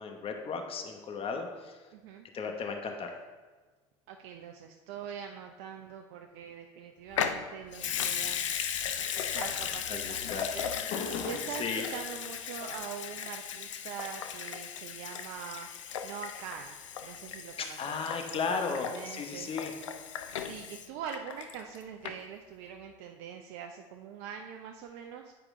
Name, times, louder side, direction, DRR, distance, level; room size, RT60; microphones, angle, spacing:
voice 1, 0.0-1.7 2.3-3.2 9.9-10.5 11.6-11.9 17.6-19.7, left 5 dB, 35° left, 4 dB, 1.0 m, -35 dB
voice 2, 1.9-2.3 4.1-8.4 9.0-10.7 11.2-15.7 16.0-16.8 17.0-19.5 20.4-25.3, right 7 dB, 70° right, 4 dB, 0.5 m, -43 dB
sound 1, 3.2-4.4 8.0-8.5 9.6-16.4 18.2-21.2, left 5 dB, 65° left, 1.0 m, -47 dB
Water tap faucet / Sink (filling or washing) / Liquid, 7.1-21.8 22.0-22.1, left 8 dB, 90° left, 0.5 m, -37 dB
9.3 x 4.9 x 3.6 m, 1.4 s
hypercardioid pair, 75°, 16 cm